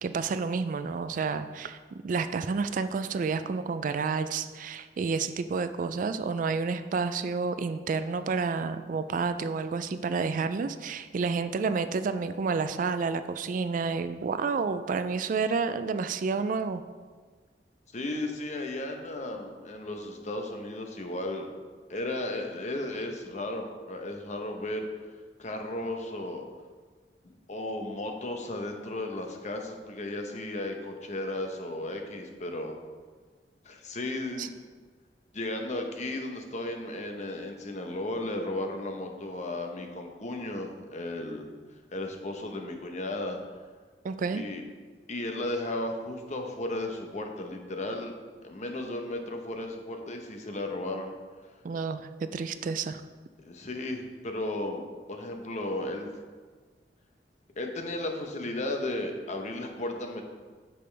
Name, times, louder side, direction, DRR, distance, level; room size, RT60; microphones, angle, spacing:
voice 1, 0.0-16.8 34.4-34.5 44.0-44.4 51.6-53.0, right 4 dB, 50° right, 11 dB, 0.3 m, -30 dB
voice 2, 17.9-21.5 21.9-24.9 25.4-26.4 27.5-32.8 33.6-34.5 35.3-41.5 41.9-43.4 44.3-44.6 45.1-48.1 48.4-51.1 53.4-56.1 57.6-60.2, left 1 dB, 40° left, 4 dB, 0.9 m, -34 dB
8.5 x 6.9 x 3.3 m, 1.5 s
head